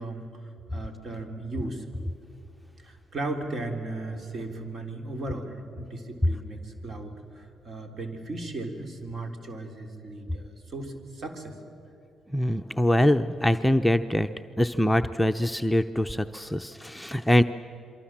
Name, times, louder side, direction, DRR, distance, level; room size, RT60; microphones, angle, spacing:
voice 1, 0.0-1.9 2.8-11.6, right 2 dB, 50° right, 5 dB, 3.7 m, -36 dB
voice 2, 12.3-14.3 14.6-17.4, equal, 5° left, 7 dB, 0.8 m, -23 dB
27.5 x 23.5 x 7.5 m, 2.7 s
supercardioid pair, 55°, 0 cm